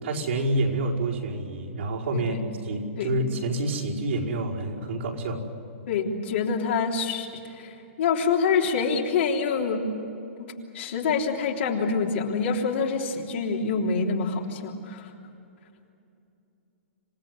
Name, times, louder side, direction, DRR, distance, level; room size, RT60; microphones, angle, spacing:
voice 1, 0.0-5.4, right 2 dB, 70° right, -4 dB, 5.1 m, -28 dB
voice 2, 5.9-9.8 10.4-15.1, left 5 dB, 60° left, 0 dB, 3.4 m, -26 dB
27.5 x 17.0 x 9.6 m, 2.7 s
hypercardioid pair, 155°, 7 cm